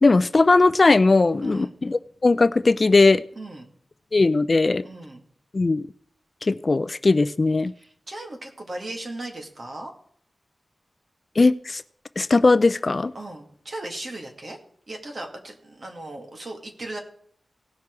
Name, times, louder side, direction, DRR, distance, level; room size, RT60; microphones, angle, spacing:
voice 1, 0.0-3.2 4.1-4.8 5.5-5.9 6.4-7.7 11.4-11.8 12.2-13.1, left 3 dB, 40° left, 14 dB, 0.4 m, -19 dB
voice 2, 1.4-1.7 3.4-3.7 4.8-5.2 7.7-9.9 13.1-14.6 14.9-17.0, right 1 dB, 45° right, 2 dB, 2.3 m, -37 dB
18.0 x 6.0 x 4.7 m, 0.62 s
wide cardioid pair, 105°, 0 cm